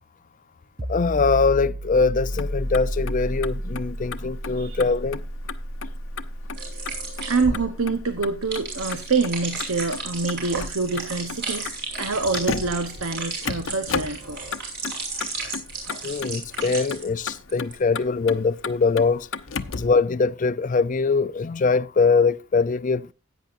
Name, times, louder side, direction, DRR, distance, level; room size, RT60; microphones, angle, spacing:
sound 1, 0.8-12.2, equal, 20° right, 0.6 m, -33 dB
voice 1, 0.9-5.2 16.0-19.3 19.7-23.1, left 4 dB, 40° left, 0.5 m, -22 dB
Motor vehicle (road), 2.2-20.0, left 5 dB, 65° left, 0.8 m, -35 dB
sound 2, 6.5-17.0 17.3-17.7, right 3 dB, 55° right, 5.9 m, -34 dB
voice 2, 7.3-11.7 12.0-14.4 19.7-19.8, right 4 dB, 85° right, 1.0 m, -26 dB
16.0 x 9.2 x 2.6 m
head